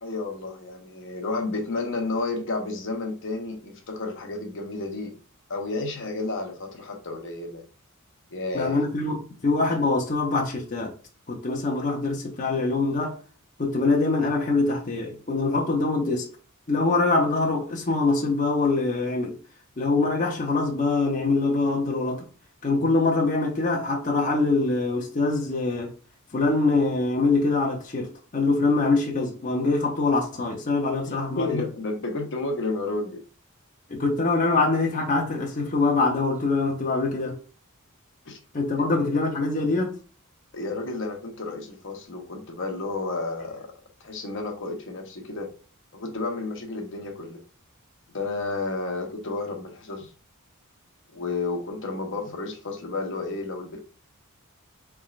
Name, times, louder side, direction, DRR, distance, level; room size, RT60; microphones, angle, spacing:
voice 1, 0.0-5.1 5.5-7.6 8.3-8.8 31.0-33.2 38.3-38.4 40.5-43.7 44.0-45.5 45.9-47.4 48.1-50.1 51.1-53.8, left 3 dB, 60° left, 0.9 m, -31 dB
voice 2, 8.5-10.9 11.3-13.2 13.6-16.3 16.7-19.4 19.8-22.3 22.6-25.9 26.3-31.6 33.9-37.4 38.5-40.0, left 3 dB, 35° left, 0.7 m, -24 dB
4.1 x 3.5 x 2.4 m
head